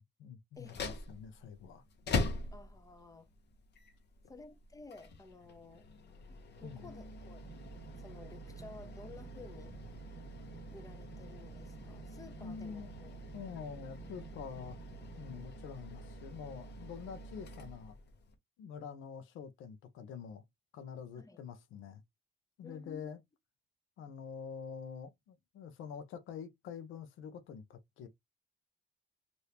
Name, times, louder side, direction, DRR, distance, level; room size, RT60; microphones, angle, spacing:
voice 1, 0.0-1.8 6.6-6.9 12.4-12.9 13.3-14.8 15.2-18.0 18.6-20.4 20.7-22.0 22.6-23.2 24.0-28.1, left 7 dB, 85° left, 0.7 m, -46 dB
sound 1, 0.5-18.3, left 2 dB, 60° left, 0.9 m, -44 dB
voice 2, 2.5-3.3 4.3-5.9 6.6-7.6 8.0-9.8 10.7-13.2 21.2-21.4 22.6-23.2, left 3 dB, 15° left, 0.7 m, -53 dB
sound 2, 7.4-15.4, right 4 dB, 35° right, 1.2 m, -54 dB
2.8 x 2.6 x 3.3 m
cardioid pair, 90°, 20 cm